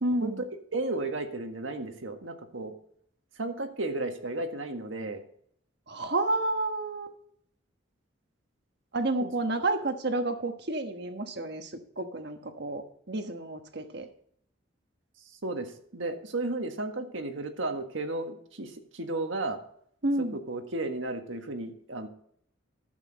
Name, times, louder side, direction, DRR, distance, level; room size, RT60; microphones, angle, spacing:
voice 1, 0.0-0.4 5.9-7.1 8.9-14.1 20.0-20.4, right 2 dB, 55° right, 7 dB, 1.3 m, -30 dB
voice 2, 0.7-2.7 3.4-5.2 9.2-9.3 15.4-19.6 20.5-22.1, right 2 dB, 75° right, 5 dB, 1.6 m, -33 dB
12.0 x 8.3 x 4.1 m, 0.64 s
head